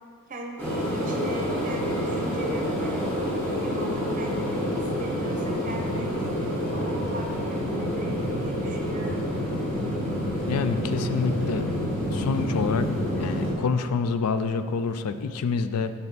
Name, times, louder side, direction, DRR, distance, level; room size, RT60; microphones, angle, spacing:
voice 1, 0.3-3.0 3.5-9.2, right 1 dB, 35° right, 2 dB, 0.7 m, -38 dB
sound 1, 0.6-13.5, equal, 10° left, 1.5 m, -28 dB
voice 2, 10.5-11.7 12.1-12.9 13.2-15.9, left 5 dB, 85° left, 11 dB, 0.4 m, -27 dB
6.7 x 5.5 x 4.0 m, 2.1 s
head